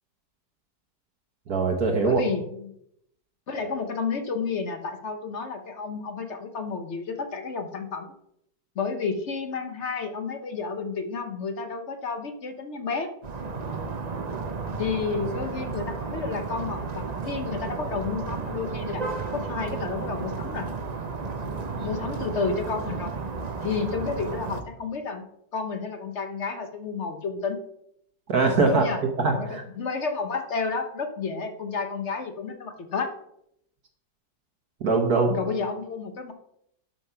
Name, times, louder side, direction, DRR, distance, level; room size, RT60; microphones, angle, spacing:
voice 1, 1.5-2.2 28.3-28.8 29.2-29.6 34.8-35.4, right 4 dB, 60° right, 2 dB, 1.6 m, -22 dB
voice 2, 2.0-2.7 3.5-8.1 8.7-13.1 14.8-19.0 19.3-20.7 21.8-23.1 23.6-27.6 28.6-29.0 29.3-33.1 35.3-36.3, left 4 dB, 45° left, 7 dB, 1.1 m, -31 dB
sound 1, 13.2-24.6, right 4 dB, 45° right, 0.5 m, -33 dB
11.5 x 5.2 x 5.7 m, 0.76 s
omnidirectional pair, 1.9 m